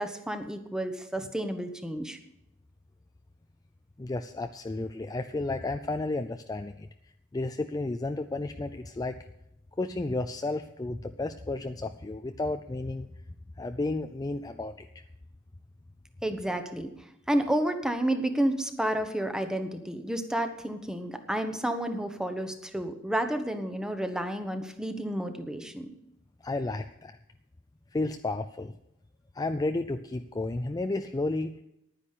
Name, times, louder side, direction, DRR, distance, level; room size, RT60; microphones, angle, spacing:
voice 1, 0.0-2.2 16.2-16.9 17.3-25.9, right 1 dB, 5° right, 7 dB, 1.0 m, -30 dB
voice 2, 4.0-9.2 9.8-13.1 13.6-15.0 26.4-27.2 27.9-28.7 29.3-31.6, left 2 dB, 20° left, 8 dB, 0.4 m, -32 dB
10.5 x 9.8 x 6.6 m, 0.82 s
head